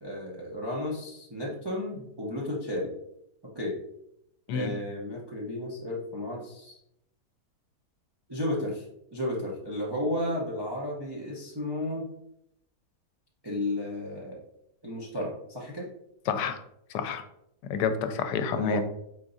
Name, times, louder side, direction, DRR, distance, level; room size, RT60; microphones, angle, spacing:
voice 1, 0.0-2.9 3.5-3.8 4.5-6.8 8.3-8.8 9.1-12.0 13.4-14.4 14.8-15.9 18.5-18.8, left 1 dB, 35° right, -4 dB, 0.4 m, -33 dB
voice 2, 16.3-16.6 16.9-17.2 17.7-18.8, left 6 dB, 85° left, 8 dB, 1.2 m, -28 dB
4.8 x 3.7 x 2.6 m, 0.77 s
omnidirectional pair, 1.8 m